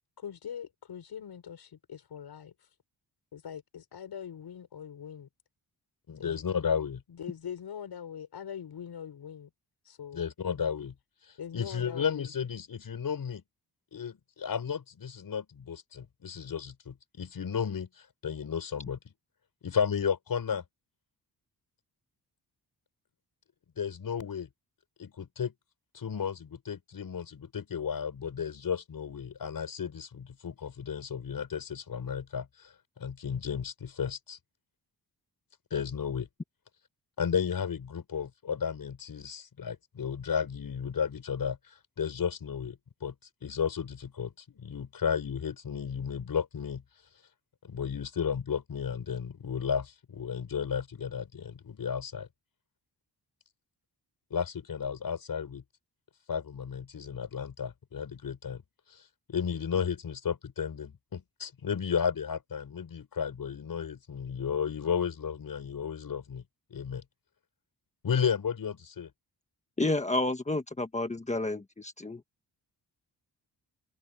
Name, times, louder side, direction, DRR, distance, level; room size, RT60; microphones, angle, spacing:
voice 1, 0.2-2.7 3.3-5.3 6.2-6.6 7.1-9.5 9.8-10.5 11.4-12.3, left 8 dB, 75° left, 6.3 m, -42 dB
voice 2, 6.1-7.0 10.1-10.9 11.5-13.4 13.9-19.0 19.6-20.6 23.8-24.5 25.0-25.5 25.9-34.4 35.7-36.3 37.2-43.1 43.4-46.8 47.6-52.3 54.3-55.6 56.3-58.6 58.9-59.0 59.3-66.4 66.7-67.0 68.0-69.1, left 7 dB, 55° left, 6.6 m, -33 dB
voice 3, 69.8-72.2, left 2 dB, 15° left, 1.5 m, -30 dB
wide cardioid pair, 170°, 40 cm